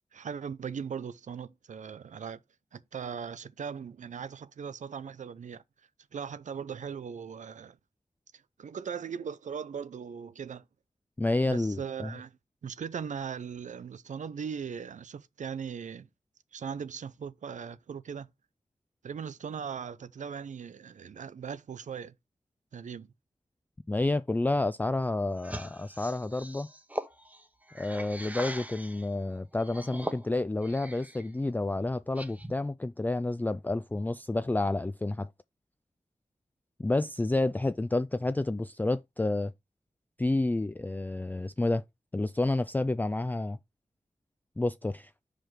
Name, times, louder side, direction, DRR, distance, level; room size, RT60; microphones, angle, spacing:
voice 1, 0.1-2.4 2.7-5.6 6.1-7.8 8.3-10.6 11.5-12.3 12.6-16.1 16.5-18.3 19.0-22.1 22.7-23.1, right 7 dB, 90° right, 0.5 m, -39 dB
voice 2, 11.2-12.1 23.9-26.7 27.7-35.3 36.8-39.5 40.2-41.8 42.1-43.6 44.6-45.1, left 2 dB, 15° left, 0.3 m, -29 dB
sound 1, 25.4-29.1 29.6-31.3 31.6-32.7, right 1 dB, 10° right, 0.9 m, -41 dB
5.9 x 5.0 x 4.6 m
wide cardioid pair, 65°, 12 cm